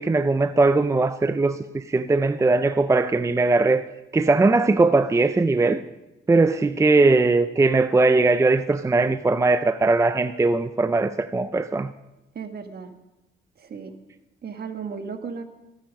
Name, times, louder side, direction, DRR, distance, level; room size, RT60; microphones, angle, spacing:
voice 1, 0.0-3.8 4.1-5.8 6.3-11.9, right 3 dB, 15° right, 0.5 m, -20 dB
voice 2, 12.3-12.9 13.6-13.9 14.4-15.4, right 5 dB, 50° right, 1.8 m, -35 dB
24.5 x 9.1 x 5.3 m
cardioid pair, 90°, 20 cm